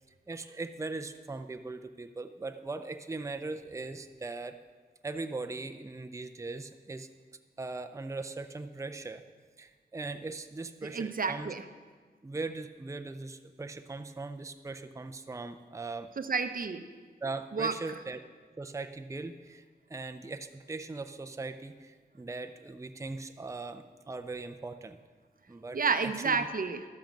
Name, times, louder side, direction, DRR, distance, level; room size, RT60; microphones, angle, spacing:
voice 1, 0.3-4.6 5.0-7.1 7.6-9.2 9.6-11.5 12.2-16.1 17.2-18.2 18.6-19.6 19.9-25.0 25.5-26.5, right 3 dB, 15° right, 8 dB, 0.5 m, -39 dB
voice 2, 10.9-11.6 16.2-16.8 17.5-17.7 25.7-26.9, right 4 dB, 55° right, 9 dB, 0.6 m, -30 dB
12.0 x 7.2 x 5.2 m, 1.5 s
cardioid pair, 55°, 17 cm